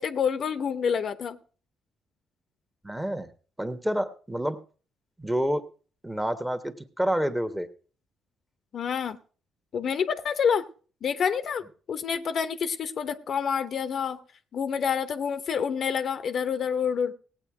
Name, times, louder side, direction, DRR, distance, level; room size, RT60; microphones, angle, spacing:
voice 1, 0.0-1.4 8.7-9.2 9.7-10.7 11.0-14.2 14.5-17.1, left 7 dB, 60° left, 0.8 m, -28 dB
voice 2, 2.8-3.3 3.6-4.6 5.2-5.6 6.0-7.7, equal, 10° right, 1.3 m, -28 dB
17.0 x 8.3 x 4.9 m
cardioid pair, 90°, 0 cm